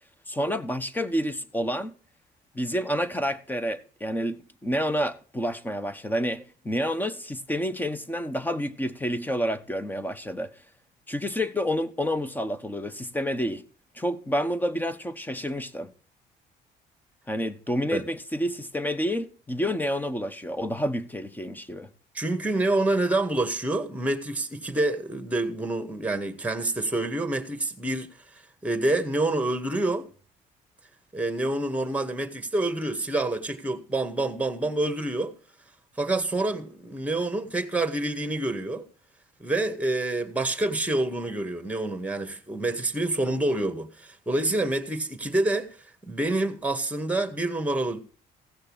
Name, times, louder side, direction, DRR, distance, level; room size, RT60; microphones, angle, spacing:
voice 1, 0.3-1.9 2.5-10.5 11.1-13.6 13.9-15.9 17.3-21.9, equal, 10° left, 1.2 m, -29 dB
voice 2, 22.1-28.1 28.6-30.1 31.1-35.3 36.0-38.8 39.4-45.8 46.0-48.0, right 2 dB, 10° right, 1.9 m, -27 dB
16.0 x 6.5 x 6.3 m
cardioid pair, 110°, 17 cm